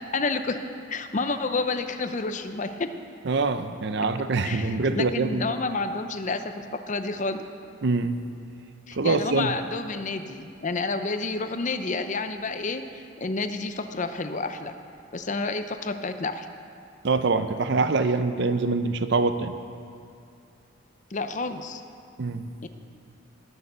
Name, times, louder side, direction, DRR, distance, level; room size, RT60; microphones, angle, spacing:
voice 1, 0.1-0.6 0.9-2.9 4.4-7.4 8.9-14.7 15.1-16.5 21.1-21.8 22.6-22.7, left 3 dB, 35° left, 8 dB, 0.6 m, -30 dB
voice 2, 3.3-5.4 7.8-8.2 8.9-9.5 17.0-19.5 22.2-22.4, right 3 dB, 55° right, 10 dB, 0.6 m, -24 dB
19.5 x 6.7 x 6.8 m, 2.5 s
head